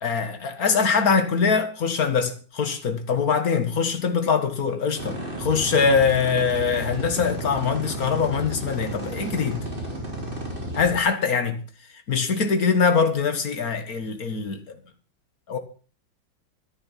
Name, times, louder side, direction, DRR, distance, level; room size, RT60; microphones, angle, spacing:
voice 1, 0.0-9.6 10.7-11.6 12.1-14.6 15.5-15.6, left 5 dB, 50° left, 2.2 m, -23 dB
sound 1, 5.0-11.0, right 1 dB, 25° right, 4.0 m, -33 dB
13.5 x 10.5 x 6.0 m
omnidirectional pair, 2.1 m